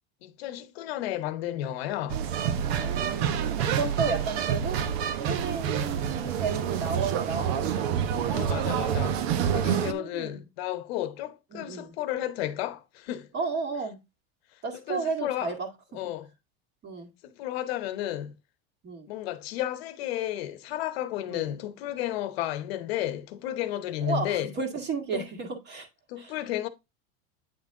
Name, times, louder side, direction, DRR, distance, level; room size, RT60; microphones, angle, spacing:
voice 1, 0.2-2.2 8.3-9.2 9.5-13.3 14.9-15.5 15.9-16.3 17.2-18.3 19.1-24.5 25.1-25.2 26.1-26.7, left 12 dB, 75° left, 0.9 m, -32 dB
sound 1, 2.1-9.9, right 8 dB, 80° right, 1.0 m, -28 dB
voice 2, 2.3-4.8 5.2-8.4 9.5-10.4 11.5-11.9 13.3-14.0 14.6-15.7 16.8-17.1 18.8-19.1 21.3-21.5 24.0-25.9 26.2-26.3, right 5 dB, 35° right, 1.9 m, -33 dB
9.2 x 3.9 x 3.6 m
supercardioid pair, 140°, 31 cm